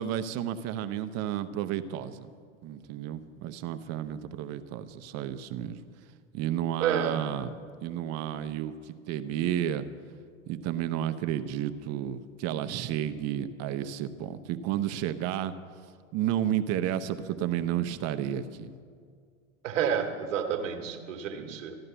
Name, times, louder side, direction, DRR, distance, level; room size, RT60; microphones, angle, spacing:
voice 1, 0.0-2.3 2.6-5.8 6.3-7.5 7.8-9.9 10.5-15.5 16.1-18.7 21.3-21.4, right 11 dB, 40° right, 11 dB, 0.9 m, -32 dB
voice 2, 6.8-7.2 19.6-21.8, right 8 dB, 70° right, 5 dB, 1.8 m, -30 dB
14.5 x 11.0 x 6.9 m, 2.1 s
hypercardioid pair, 100°, 39 cm